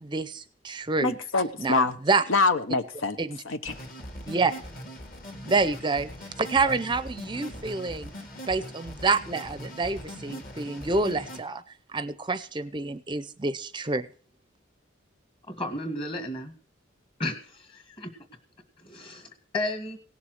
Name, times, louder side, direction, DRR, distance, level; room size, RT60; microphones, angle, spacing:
voice 1, 0.0-1.2 1.6-2.2 3.2-3.4 4.3-4.5 5.4-6.1 6.4-8.1 8.5-11.6 11.9-14.1, right 3 dB, 25° right, 13 dB, 0.5 m, -27 dB
voice 2, 1.0-1.9 2.3-3.2 3.4-3.8, left 3 dB, 80° left, 10 dB, 0.9 m, -25 dB
sound 1, 3.6-11.4, equal, 45° left, 2.2 m, -41 dB
voice 3, 15.5-16.5 17.2-18.1 18.8-20.0, left 1 dB, 25° left, 7 dB, 1.8 m, -33 dB
17.5 x 7.2 x 6.4 m, 0.42 s
head